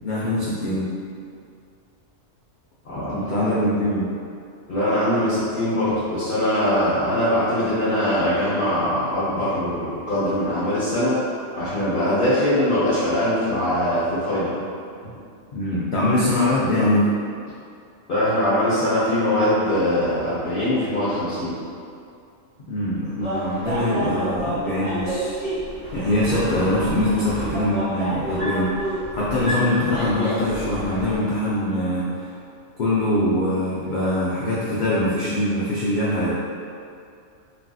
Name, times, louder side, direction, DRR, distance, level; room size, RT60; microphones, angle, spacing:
voice 1, 0.0-0.9 3.0-4.1 15.5-17.1 22.7-25.3 25.9-28.7 29.1-32.1 32.8-36.3, left 1 dB, 85° left, -8 dB, 0.4 m, -23 dB
voice 2, 4.7-11.2 11.6-14.5 18.1-21.5, left 1 dB, 50° left, -13 dB, 0.8 m, -22 dB
sound 1, 23.2-31.2, right 1 dB, 50° right, 1.2 m, -29 dB
3.2 x 2.5 x 2.3 m, 2.4 s
omnidirectional pair, 1.4 m